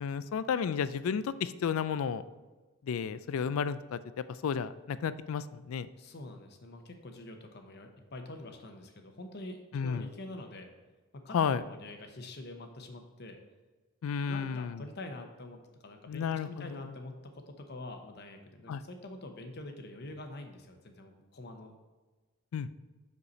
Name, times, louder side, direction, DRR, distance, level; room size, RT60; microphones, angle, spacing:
voice 1, 0.0-2.2 2.8-4.0 4.3-5.9 9.7-10.1 11.3-11.6 14.0-14.8 16.1-16.9 18.7-18.8 22.5-22.8, left 7 dB, 75° left, 15 dB, 0.3 m, -32 dB
voice 2, 6.0-10.7 11.1-13.4 14.2-21.7, left 2 dB, 50° left, 5 dB, 0.8 m, -45 dB
6.6 x 5.2 x 4.1 m, 1.2 s
head